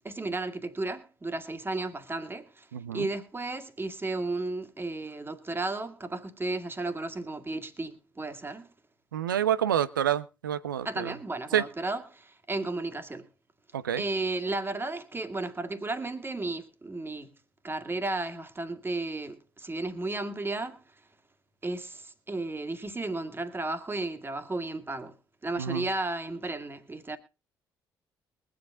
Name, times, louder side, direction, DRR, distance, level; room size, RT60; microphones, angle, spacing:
voice 1, 0.0-2.7 2.9-8.7 10.8-13.3 13.9-17.3 17.6-20.8 21.6-25.2 25.4-27.2, right 2 dB, 20° right, 1.9 m, -34 dB
voice 2, 2.7-3.1 9.1-11.1 11.5-11.6 13.7-14.0 25.6-25.8, right 10 dB, 80° right, 0.6 m, -28 dB
22.0 x 7.7 x 3.7 m
figure-of-eight pair, 45°, 11 cm